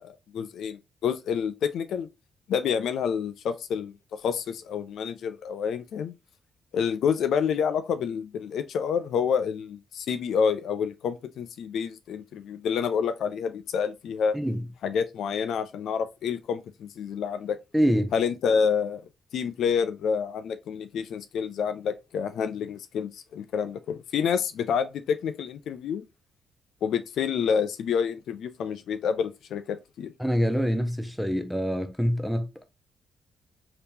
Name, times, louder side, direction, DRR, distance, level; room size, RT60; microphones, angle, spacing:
voice 1, 0.0-2.1 2.5-6.1 6.7-14.4 14.8-17.6 18.1-19.0 19.3-26.0 26.8-30.1, left 7 dB, 70° left, 0.3 m, -28 dB
voice 2, 14.3-14.6 17.7-18.1 30.2-32.6, equal, ahead, 0.7 m, -25 dB
3.3 x 2.9 x 2.7 m
hypercardioid pair, 50°, 0 cm